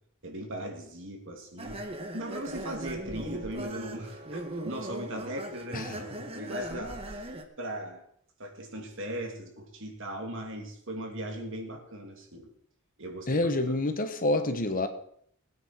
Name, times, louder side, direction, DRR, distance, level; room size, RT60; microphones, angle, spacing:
voice 1, 0.2-1.8 2.1-7.3 7.6-8.0 8.4-12.5 13.0-13.5, right 1 dB, 60° right, 2.9 m, -38 dB
sound 1, 1.6-7.4, right 1 dB, 25° right, 1.4 m, -39 dB
voice 2, 13.3-14.9, left 2 dB, 40° left, 1.3 m, -27 dB
20.5 x 9.6 x 4.6 m
head